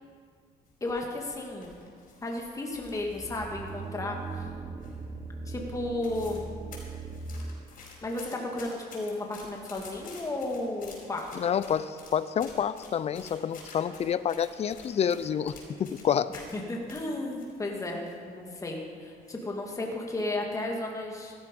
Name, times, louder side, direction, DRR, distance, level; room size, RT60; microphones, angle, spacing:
sound 1, 0.7-3.4 3.7-4.5 4.8-5.2 5.5-5.6 5.8-6.4 6.7-16.6 16.9-18.1 18.5-18.6 19.2-19.5 19.9-20.1, left 4 dB, 55° left, 5.1 m, -50 dB
voice 1, 0.8-1.7 2.2-4.2 5.5-6.5 8.0-11.4 16.5-21.3, left 2 dB, 20° left, 0 dB, 2.0 m, -33 dB
sound 2, 2.7-7.8, right 3 dB, 20° right, 1.0 m, -40 dB
voice 2, 11.3-16.3, left 8 dB, 40° left, 15 dB, 0.5 m, -28 dB
15.5 x 13.0 x 5.3 m, 2.1 s
cardioid pair, 110°, 17 cm